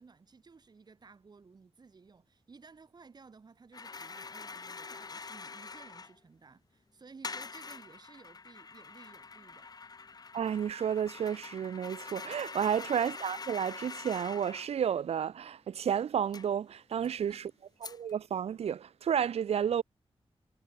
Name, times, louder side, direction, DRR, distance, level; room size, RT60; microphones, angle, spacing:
voice 1, 0.0-9.9 17.3-17.4, right 4 dB, 40° right, 3.5 m, -56 dB
sound 1, 3.7-6.2 7.2-14.7 16.3-16.5 17.0-17.1 17.8-18.1, left 4 dB, 40° left, 1.5 m, -45 dB
voice 2, 10.3-17.5 17.8-19.8, right 8 dB, 80° right, 0.5 m, -31 dB
wide cardioid pair, 160°, 10 cm